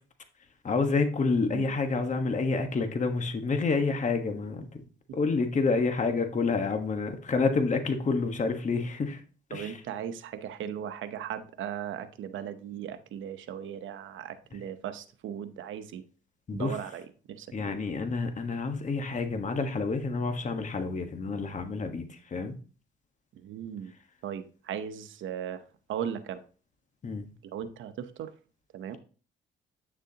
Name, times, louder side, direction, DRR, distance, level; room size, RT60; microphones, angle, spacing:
voice 1, 0.6-4.7 5.1-9.2 9.5-9.8 16.5-16.8 17.5-22.5 27.0-27.2, left 4 dB, 40° left, 6 dB, 1.4 m, -28 dB
voice 2, 9.5-16.0 16.5-17.8 23.3-23.9 24.2-25.6 25.9-26.4 27.4-28.3 28.7-29.0, right 9 dB, 75° right, 10 dB, 0.9 m, -37 dB
9.5 x 6.7 x 2.9 m, 0.38 s
cardioid pair, 90°, 20 cm